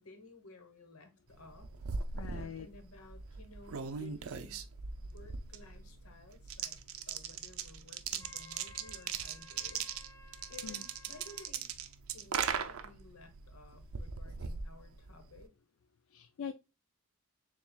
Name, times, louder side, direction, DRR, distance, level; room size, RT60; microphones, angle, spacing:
voice 1, 0.0-1.7 2.3-4.7 5.0-6.8 7.1-9.8 10.5-11.7 12.1-15.5, left 2 dB, 90° left, 1.2 m, -55 dB
sound 1, 1.4-15.4, right 6 dB, 75° right, 0.5 m, -40 dB
voice 2, 2.1-2.7 10.6-10.8 16.1-16.5, left 7 dB, 65° left, 0.4 m, -42 dB
Wind instrument woodwind instrument, 8.2-11.6, left 3 dB, 15° left, 0.9 m, -57 dB
7.0 x 2.4 x 2.2 m
head